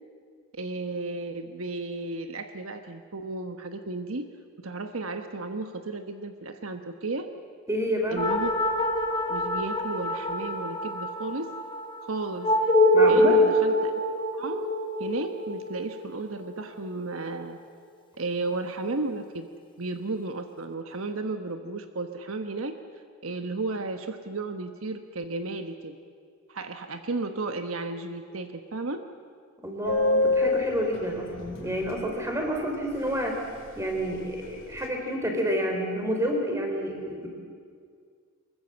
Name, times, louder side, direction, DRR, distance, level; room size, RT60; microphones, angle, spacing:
voice 1, 0.5-4.3 4.6-7.3 8.1-8.5 9.3-11.6 12.0-12.6 13.1-14.0 14.3-14.7 15.0-17.6 18.2-19.5 19.8-22.8 23.2-26.0 26.5-29.0, right 3 dB, 70° right, 7 dB, 1.2 m, -33 dB
voice 2, 7.7-8.2 12.9-13.4 29.6-33.4 33.8-37.3, equal, 15° right, 2 dB, 4.0 m, -29 dB
sound 1, 8.2-17.0, left 1 dB, 25° left, 1.8 m, -25 dB
Subway metro underground, 29.8-32.0 32.3-32.4 32.6-32.9 33.1-33.6 33.8-34.9, left 2 dB, 60° left, 3.7 m, -26 dB
24.0 x 21.0 x 7.9 m, 2.1 s
head